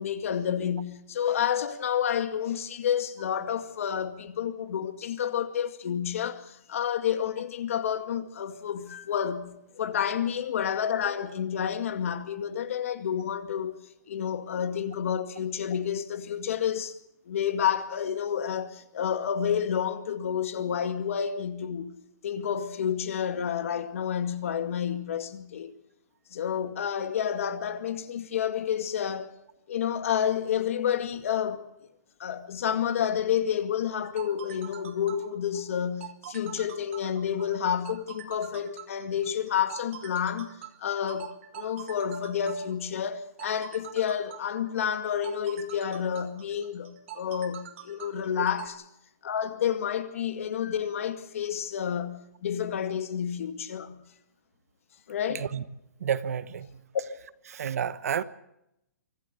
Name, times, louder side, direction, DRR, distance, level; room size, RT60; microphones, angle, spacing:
voice 1, 0.0-13.8 14.1-17.0 17.3-21.9 22.2-25.7 26.3-29.3 29.7-31.7 32.2-40.5 40.8-48.8 49.2-54.0 55.1-55.5, left 8 dB, 50° left, 2.1 m, -30 dB
sound 1, 33.9-48.7, right 11 dB, 45° right, 3.2 m, -45 dB
voice 2, 56.0-56.8 57.5-58.2, right 8 dB, 60° right, 1.2 m, -30 dB
24.5 x 15.5 x 8.2 m
hypercardioid pair, 170°, 9 cm